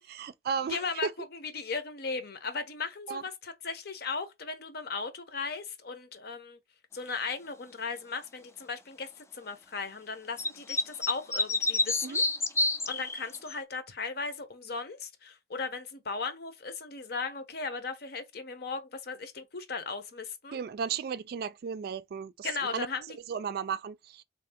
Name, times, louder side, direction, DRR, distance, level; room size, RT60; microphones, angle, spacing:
voice 1, 0.1-1.1 3.1-3.2 12.0-12.2 20.5-22.9 23.3-24.2, right 6 dB, 60° right, 0.3 m, -34 dB
voice 2, 0.7-6.6 6.9-12.2 12.9-20.6 22.4-23.2, left 4 dB, 60° left, 0.8 m, -37 dB
sound 1, 10.4-13.5, left 2 dB, 15° left, 0.4 m, -28 dB
3.7 x 2.7 x 3.5 m
head